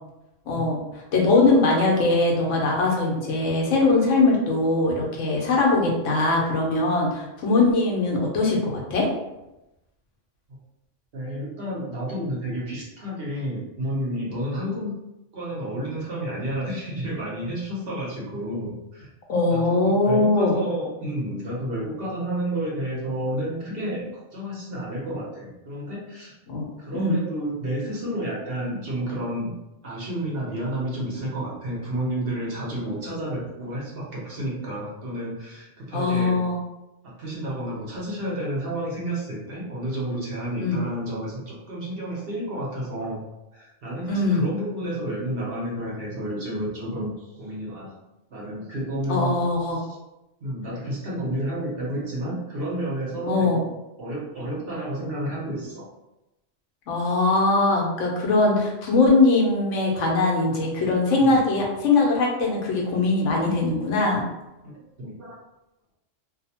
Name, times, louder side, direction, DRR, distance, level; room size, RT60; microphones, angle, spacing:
voice 1, 0.5-9.1 19.3-20.6 26.5-26.7 26.9-27.2 35.9-36.6 40.6-40.8 44.1-44.4 49.1-49.8 53.3-53.6 56.9-64.2, left 3 dB, 90° left, -2 dB, 1.1 m, -21 dB
voice 2, 11.1-14.9 15.3-19.1 19.5-26.3 26.8-29.5 29.8-36.5 37.0-43.2 43.5-47.9 48.3-49.4 49.7-50.0 50.4-53.6 54.0-55.8 61.2-61.4 64.6-65.4, right 1 dB, 55° right, -5 dB, 1.0 m, -30 dB
2.7 x 2.0 x 2.8 m, 0.95 s
omnidirectional pair, 1.2 m